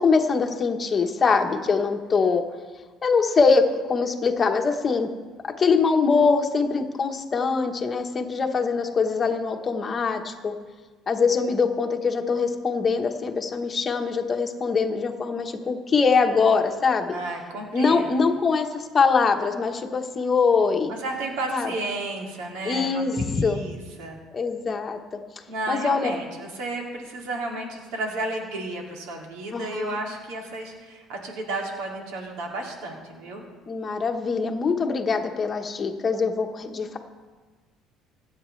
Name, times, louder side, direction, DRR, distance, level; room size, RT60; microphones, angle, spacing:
voice 1, 0.0-2.4 3.0-5.1 5.6-10.5 11.1-17.2 17.7-20.9 21.5-21.7 22.6-23.6 24.3-25.2 25.7-26.1 29.5-30.0 33.7-37.0, left 4 dB, 25° left, 4 dB, 1.1 m, -23 dB
voice 2, 17.1-18.1 20.9-23.0 23.3-24.2 25.5-33.4, right 2 dB, 90° right, 0 dB, 2.5 m, -32 dB
25.0 x 8.4 x 3.3 m, 1.4 s
cardioid pair, 140°, 0 cm